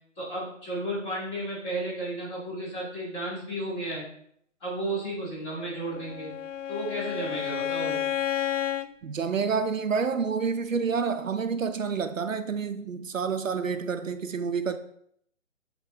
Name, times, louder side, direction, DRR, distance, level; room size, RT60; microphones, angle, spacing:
voice 1, 0.2-4.0 4.6-6.3 6.7-8.0, right 1 dB, 15° left, 2.2 m, -33 dB
Bowed string instrument, 5.7-8.9, left 10 dB, 75° left, 0.5 m, -31 dB
voice 2, 9.0-14.8, right 5 dB, 80° right, 0.7 m, -28 dB
7.2 x 4.0 x 3.5 m
figure-of-eight pair, 140°, 38 cm